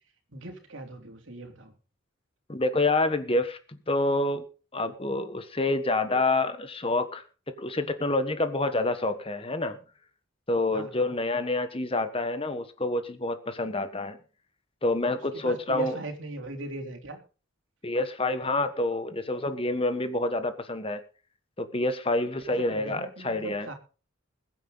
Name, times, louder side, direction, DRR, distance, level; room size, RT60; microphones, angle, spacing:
voice 1, 0.3-1.7 10.7-11.1 15.0-17.2 22.6-23.7, right 2 dB, 65° right, 4 dB, 3.5 m, -40 dB
voice 2, 2.5-4.4 4.7-7.2 7.6-9.8 10.5-14.2 14.8-16.0 17.8-21.0 21.6-23.7, left 2 dB, 25° left, 10 dB, 1.3 m, -27 dB
21.5 x 9.2 x 4.0 m, 0.35 s
head